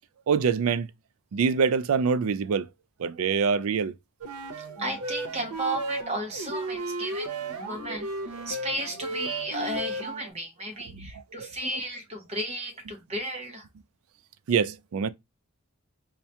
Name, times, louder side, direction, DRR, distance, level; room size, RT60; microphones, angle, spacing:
voice 1, 0.3-0.9 1.3-2.7 3.0-3.9 7.9-8.0 10.9-11.5 14.5-15.1, right 6 dB, 70° right, 0.3 m, -25 dB
sound 1, 4.2-10.3, right 1 dB, 90° right, 0.7 m, -34 dB
voice 2, 4.8-8.1 8.5-13.7, right 1 dB, 30° right, 0.7 m, -34 dB
4.5 x 2.1 x 2.8 m
head